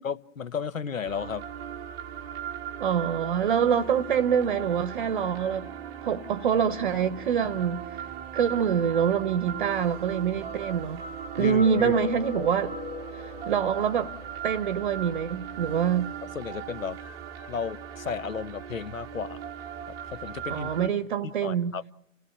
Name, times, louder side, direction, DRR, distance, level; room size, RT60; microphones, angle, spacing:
voice 1, 0.0-1.4 11.4-11.9 16.2-17.0 17.5-19.4 19.9-20.9 21.2-21.9, left 6 dB, 70° left, 1.2 m, -34 dB
sound 1, 1.0-20.9, right 8 dB, 10° right, 0.9 m, -38 dB
voice 2, 2.8-5.7 6.0-8.1 8.3-11.0 11.3-12.7 13.1-14.1 14.4-16.1 20.5-21.7, right 8 dB, 35° right, 0.9 m, -25 dB
sound 2, 11.6-15.2, left 10 dB, 20° left, 2.7 m, -40 dB
29.5 x 17.0 x 7.2 m
figure-of-eight pair, 140°, 41 cm